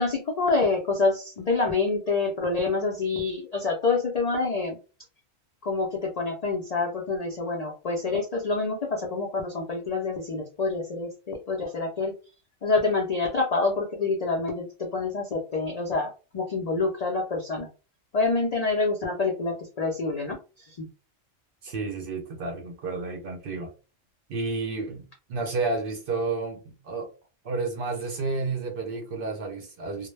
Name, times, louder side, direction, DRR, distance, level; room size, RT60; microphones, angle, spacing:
voice 1, 0.0-4.8 5.6-12.1 12.6-17.7 18.1-20.4 20.7-20.9, left 3 dB, 65° left, 0.4 m, -27 dB
voice 2, 21.6-23.7 24.3-27.1 27.4-30.1, right 3 dB, 60° right, 0.6 m, -31 dB
2.1 x 2.1 x 3.1 m
omnidirectional pair, 1.3 m